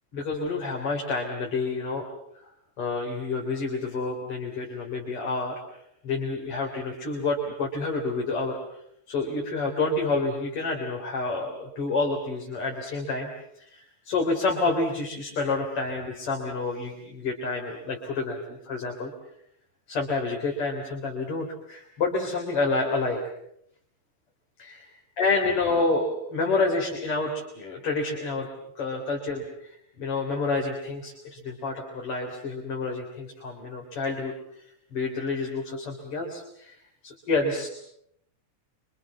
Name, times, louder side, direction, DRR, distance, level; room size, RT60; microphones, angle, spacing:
voice 1, 0.1-2.1 2.8-5.6 6.0-8.6 9.1-13.3 13.5-19.1 19.9-23.2 24.6-24.9 25.2-28.5 28.8-34.3 34.9-36.8 37.0-37.7, left 3 dB, 40° left, 0 dB, 4.3 m, -28 dB
28.5 x 25.5 x 7.1 m, 0.74 s
omnidirectional pair, 3.9 m